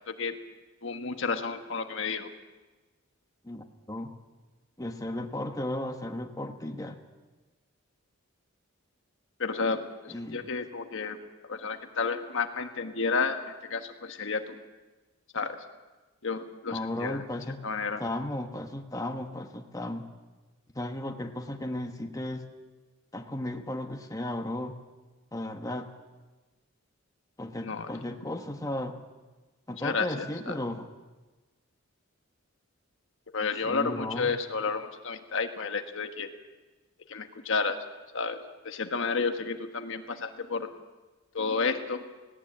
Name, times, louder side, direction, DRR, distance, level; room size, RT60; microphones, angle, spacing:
voice 1, 0.1-0.4 0.8-2.3 9.4-11.2 11.5-13.4 13.7-14.6 15.3-15.6 16.2-17.2 17.6-18.0 27.6-27.9 29.8-30.5 33.3-36.3 37.1-37.8 38.1-38.4 38.6-40.7 41.3-42.0, left 4 dB, 65° left, 7 dB, 1.4 m, -31 dB
voice 2, 3.4-4.1 4.8-7.0 10.1-10.5 16.7-17.6 18.0-20.0 20.7-22.4 23.1-24.7 25.3-25.9 27.4-29.0 29.7-30.9 33.6-34.3, left 1 dB, 15° left, 4 dB, 1.3 m, -35 dB
18.5 x 17.5 x 8.8 m, 1.2 s
head